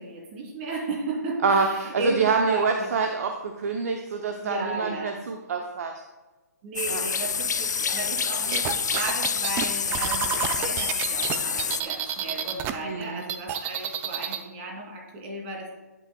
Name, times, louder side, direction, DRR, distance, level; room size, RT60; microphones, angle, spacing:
voice 1, 0.0-2.9 4.4-5.2 6.6-15.7, right 2 dB, 40° right, -1 dB, 2.8 m, -34 dB
voice 2, 1.4-5.9 6.9-7.0 12.8-13.2, right 5 dB, 60° right, 4 dB, 0.8 m, -26 dB
sound 1, 6.8-11.8, left 6 dB, 75° left, 0.5 m, -27 dB
sound 2, 8.5-12.7 13.0-14.4, right 10 dB, 20° right, 0.5 m, -30 dB
10.5 x 9.2 x 2.3 m, 1.2 s
figure-of-eight pair, 135°, 9 cm